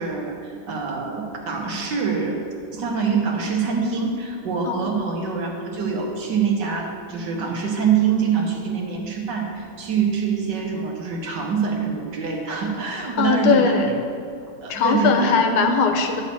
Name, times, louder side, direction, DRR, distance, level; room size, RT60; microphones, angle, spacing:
voice 1, 0.0-2.4 2.7-13.8 14.6-15.4, right 6 dB, 60° right, 1 dB, 1.4 m, -25 dB
voice 2, 13.2-13.9 14.7-16.2, left 5 dB, 80° left, 5 dB, 1.6 m, -19 dB
10.5 x 4.1 x 6.9 m, 2.5 s
omnidirectional pair, 2.4 m